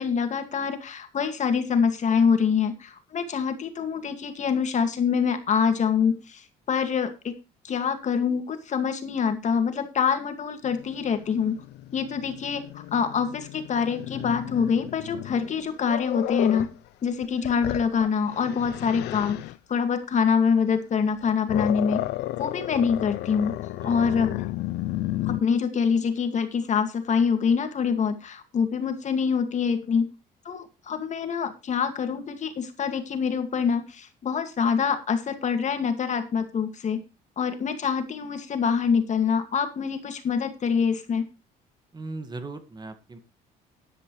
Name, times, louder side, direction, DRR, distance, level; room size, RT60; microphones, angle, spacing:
voice 1, 0.0-7.3 7.6-11.6 11.9-16.7 17.0-19.4 19.7-22.0 22.4-23.6 23.8-24.4 25.2-30.1 30.5-37.0 37.4-41.3, left 6 dB, 45° left, 8 dB, 2.1 m, -25 dB
Growling, 10.6-16.8 17.2-19.6 21.0-25.4, left 15 dB, 80° left, 0.6 m, -33 dB
voice 2, 41.9-43.2, right 2 dB, 25° right, 9 dB, 1.8 m, -38 dB
13.0 x 11.0 x 3.2 m, 0.28 s
cardioid pair, 110°, 17 cm